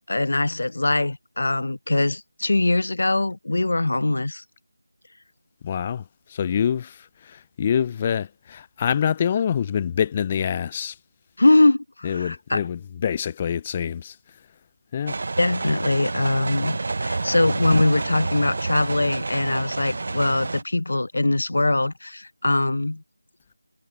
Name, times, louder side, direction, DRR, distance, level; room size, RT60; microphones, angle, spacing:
voice 1, 0.1-4.4 11.4-12.6 15.4-23.0, left 2 dB, 65° left, 0.7 m, -22 dB
voice 2, 5.6-6.0 6.3-11.0 12.0-14.2 14.9-15.1, left 8 dB, 20° left, 0.3 m, -25 dB
sound 1, 15.1-20.6, right 3 dB, 50° right, 0.5 m, -29 dB
figure-of-eight pair, 170°, 0 cm